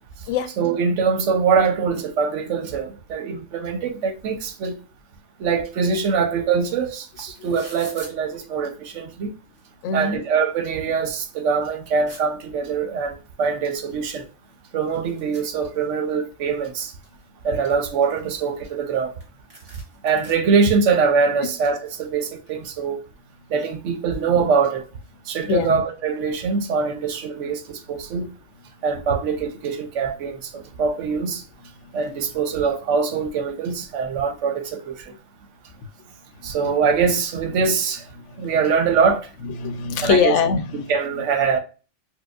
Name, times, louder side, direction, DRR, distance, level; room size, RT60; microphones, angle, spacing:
voice 1, 0.6-4.8 5.4-9.3 9.9-14.2 14.7-16.9 17.4-19.1 20.0-23.0 23.5-24.8 25.3-28.3 28.8-31.4 31.9-35.1 36.4-38.1 38.4-39.3 40.0-40.4 40.9-41.6, right 5 dB, 80° right, 1.0 m, -23 dB
sound 1, 6.6-6.7 6.9-8.1 9.0-9.1 9.4-10.2 10.7-10.8 11.1-12.2 13.4-13.5 13.9-14.0 14.2-16.1 16.5-17.2 17.7-18.9 19.2-19.3 19.5-20.3, right 1 dB, 40° right, 1.7 m, -45 dB
voice 2, 9.8-10.2 25.5-25.8 39.4-40.9, left 6 dB, 85° left, 0.9 m, -22 dB
4.5 x 2.2 x 2.3 m
omnidirectional pair, 1.2 m